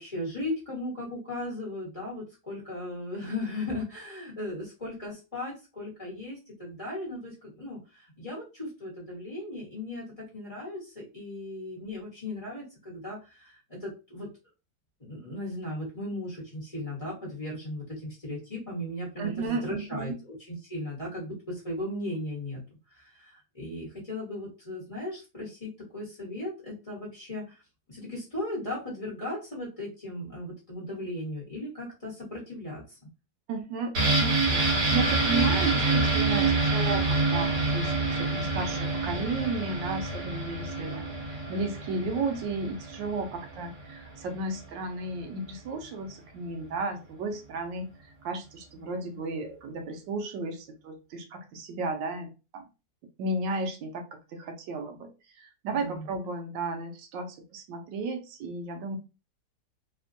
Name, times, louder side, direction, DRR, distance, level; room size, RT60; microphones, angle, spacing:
voice 1, 0.0-14.3 15.0-22.6 22.9-27.5 27.9-33.0 40.7-41.0 55.7-56.0, left 1 dB, 25° left, -7 dB, 1.0 m, -37 dB
voice 2, 19.2-20.2 33.5-47.9 48.2-52.6 53.2-55.1 55.4-59.0, right 3 dB, 90° right, 5 dB, 1.3 m, -34 dB
sound 1, 33.9-43.6 43.9-44.0, right 3 dB, 60° right, 1.6 m, -27 dB
3.3 x 2.2 x 2.5 m, 0.29 s
omnidirectional pair, 1.9 m